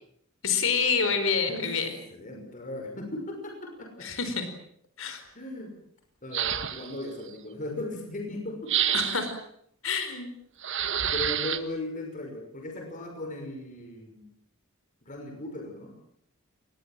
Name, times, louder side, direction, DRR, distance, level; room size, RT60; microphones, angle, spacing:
voice 1, 0.4-1.9 4.0-4.5 5.0-5.2 8.9-9.3 9.8-10.3, left 5 dB, 70° left, 8 dB, 4.7 m, -27 dB
voice 2, 2.1-4.1 5.3-5.7 6.2-9.0 11.1-14.3 15.0-15.9, left 1 dB, 40° left, 2 dB, 5.9 m, -37 dB
sound 1, 6.3-7.0 8.7-9.4 10.6-11.6, right 10 dB, 65° right, 1.7 m, -28 dB
28.0 x 21.0 x 7.7 m, 0.69 s
head